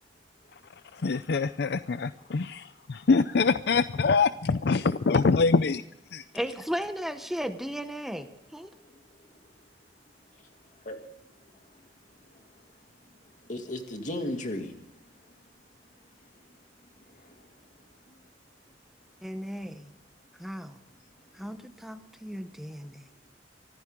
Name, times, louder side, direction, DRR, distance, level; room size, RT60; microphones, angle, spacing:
voice 1, 0.9-5.8 6.1-6.2, left 4 dB, 65° left, 13 dB, 0.5 m, -24 dB
voice 2, 6.3-8.7 19.2-19.9 20.4-20.8 21.3-23.1, equal, ahead, 8 dB, 0.9 m, -35 dB
voice 3, 8.8-9.5 10.3-10.4 10.8-11.0 11.6-11.8 12.3-12.7 13.2-14.8 15.1-15.4 16.2-16.3 17.1-18.2, left 1 dB, 45° left, 5 dB, 2.4 m, -39 dB
24.5 x 15.5 x 3.7 m, 0.82 s
head